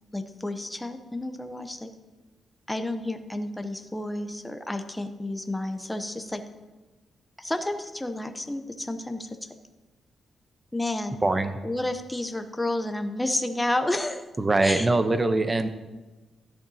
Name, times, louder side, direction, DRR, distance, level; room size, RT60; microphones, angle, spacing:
voice 1, 0.1-1.9 2.7-6.4 7.4-9.3 10.7-11.2 11.6-14.2 14.6-14.9, left 1 dB, 10° left, 7 dB, 0.7 m, -30 dB
voice 2, 11.2-11.6 14.4-15.7, right 2 dB, 20° right, 9 dB, 0.7 m, -23 dB
13.0 x 10.5 x 2.7 m, 1.2 s
cardioid pair, 125°, 0 cm